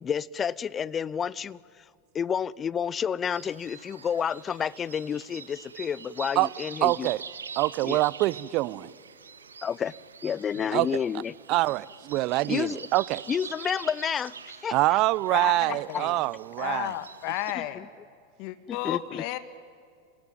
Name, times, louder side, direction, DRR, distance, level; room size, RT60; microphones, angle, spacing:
voice 1, 0.0-1.6 2.1-7.1 7.8-8.0 9.6-9.9 10.2-11.3 12.5-12.8 13.3-14.3 14.6-15.0 17.6-17.9 18.7-19.2, left 7 dB, 25° left, 0.5 m, -30 dB
sound 1, 3.3-17.5, right 6 dB, 85° right, 1.2 m, -45 dB
voice 2, 6.8-7.2 7.6-8.9 10.7-10.9 11.5-13.2 14.7-16.9, right 19 dB, 50° right, 0.6 m, -25 dB
voice 3, 10.5-10.8 15.3-16.2 16.6-17.9 18.4-19.4, left 15 dB, 55° left, 1.7 m, -33 dB
26.0 x 18.0 x 9.4 m
hypercardioid pair, 95°, 0 cm